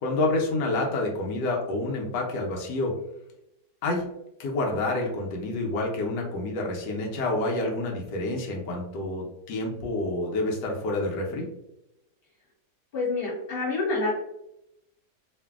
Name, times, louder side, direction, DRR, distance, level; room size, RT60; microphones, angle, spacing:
voice 1, 0.0-2.9 3.8-4.1 4.4-11.5, left 2 dB, 90° left, 0 dB, 1.3 m, -28 dB
voice 2, 12.9-14.2, left 3 dB, 35° left, -5 dB, 1.3 m, -27 dB
2.9 x 2.5 x 2.3 m, 0.85 s
omnidirectional pair, 1.8 m